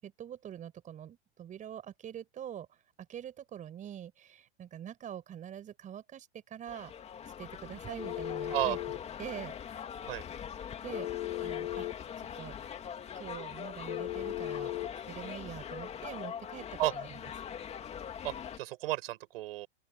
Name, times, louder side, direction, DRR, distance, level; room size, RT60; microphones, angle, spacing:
voice 1, 0.0-2.8 3.1-7.0 7.2-8.8 9.2-9.5 10.8-11.9 12.2-12.5 13.1-14.7 15.1-17.3, right 10 dB, 25° right, 6.0 m, -44 dB
sound 1, 6.7-18.6, left 8 dB, 20° left, 2.5 m, -43 dB
Telephone, 8.0-9.0 10.9-12.0 13.9-14.9, left 15 dB, 65° left, 1.5 m, -36 dB
voice 2, 18.2-19.7, right 16 dB, 60° right, 7.0 m, -33 dB
open air
hypercardioid pair, 140°, 33 cm